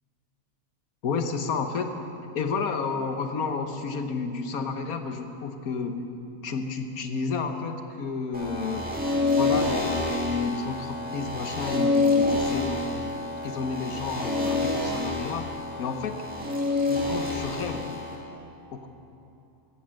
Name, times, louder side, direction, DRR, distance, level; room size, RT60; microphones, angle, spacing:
voice 1, 1.0-1.9 2.3-6.0 6.4-8.9 9.3-13.1 13.4-15.5 15.8-16.2 16.9-17.9 18.7-18.9, left 4 dB, 85° left, 6 dB, 1.5 m, -31 dB
sound 1, 8.3-18.2, left 3 dB, 5° right, 2.6 m, -27 dB
16.0 x 14.0 x 6.5 m, 2.9 s
omnidirectional pair, 1.5 m